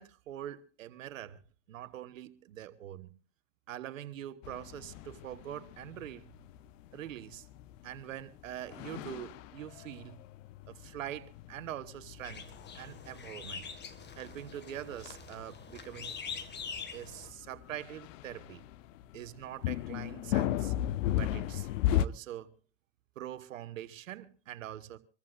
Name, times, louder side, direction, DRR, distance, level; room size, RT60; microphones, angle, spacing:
voice 1, 0.0-1.4 1.7-3.1 3.7-6.3 6.9-7.5 7.8-10.2 10.7-13.6 14.2-16.1 16.9-18.6 19.1-20.7 21.1-22.5 23.2-25.0, right 12 dB, 90° right, 1.2 m, -44 dB
sound 1, 4.4-22.1, left 12 dB, 75° left, 0.7 m, -37 dB
sound 2, 12.2-17.3, left 5 dB, 25° left, 1.7 m, -44 dB
25.5 x 14.5 x 2.5 m
hypercardioid pair, 105°, 38 cm